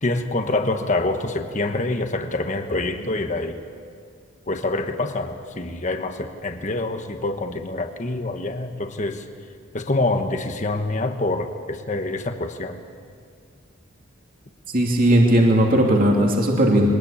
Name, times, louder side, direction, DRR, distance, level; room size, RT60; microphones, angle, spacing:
voice 1, 0.0-3.6 4.5-9.3 9.7-12.8, left 2 dB, 35° left, 6 dB, 1.2 m, -26 dB
voice 2, 14.7-16.9, right 1 dB, 45° right, 0 dB, 2.7 m, -17 dB
22.5 x 20.0 x 8.7 m, 2.1 s
head